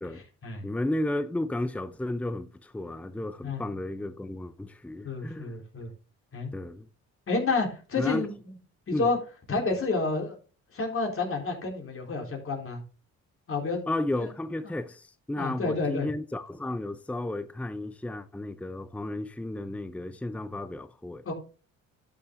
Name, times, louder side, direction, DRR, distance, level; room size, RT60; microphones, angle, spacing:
voice 1, 0.1-0.6 3.4-3.6 5.0-5.9 6.3-6.5 7.3-8.5 8.9-9.2 9.5-10.4 10.7-12.8 13.5-13.8 14.2-14.3 14.6-14.7 15.4-16.1 21.2-21.3, left 3 dB, 45° left, 3.8 m, -30 dB
voice 2, 0.6-5.6 6.5-6.8 8.0-8.3 8.9-9.1 13.9-21.2, left 1 dB, 5° left, 0.7 m, -33 dB
11.5 x 6.8 x 3.7 m
cardioid pair, 90°, 30 cm